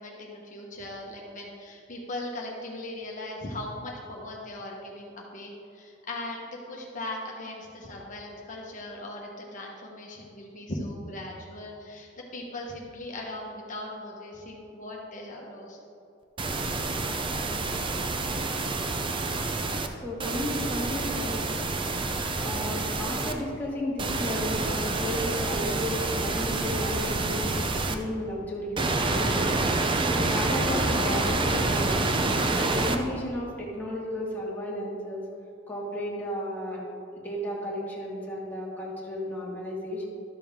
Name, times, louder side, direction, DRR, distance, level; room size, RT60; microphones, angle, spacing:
voice 1, 0.0-15.8, left 1 dB, 40° left, -2 dB, 1.2 m, -39 dB
sound 1, 16.4-19.9 20.2-23.3 24.0-27.9 28.8-33.0, right 2 dB, 25° right, 0.5 m, -27 dB
voice 2, 20.0-21.4 22.4-27.5 27.8-29.7 30.1-32.0 32.5-35.2 35.7-36.8 37.2-40.1, left 1 dB, 10° left, -5 dB, 1.9 m, -33 dB
12.5 x 6.9 x 3.6 m, 2.6 s
head